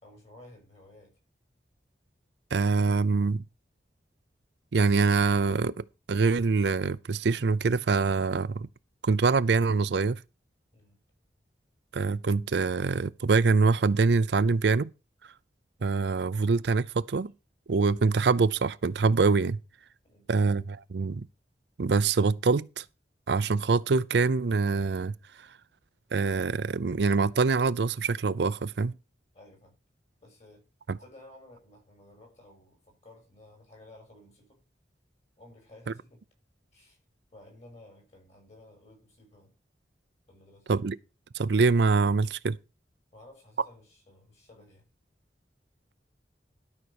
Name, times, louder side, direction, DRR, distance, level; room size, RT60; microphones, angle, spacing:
voice 1, 0.0-1.2 10.7-11.0 20.0-20.3 29.3-29.8 30.2-30.7 31.0-34.6 35.4-36.2 36.7-37.0 37.3-39.5 40.3-40.7 43.1-44.9, left 1 dB, 40° left, 5.9 m, -54 dB
voice 2, 2.5-3.4 4.7-8.7 9.0-10.2 11.9-14.9 15.8-17.3 17.7-19.6 20.3-21.3 21.8-22.8 23.3-25.1 26.1-28.9 40.7-41.0 41.3-42.6, right 4 dB, 70° right, 0.5 m, -24 dB
12.0 x 5.5 x 6.4 m
head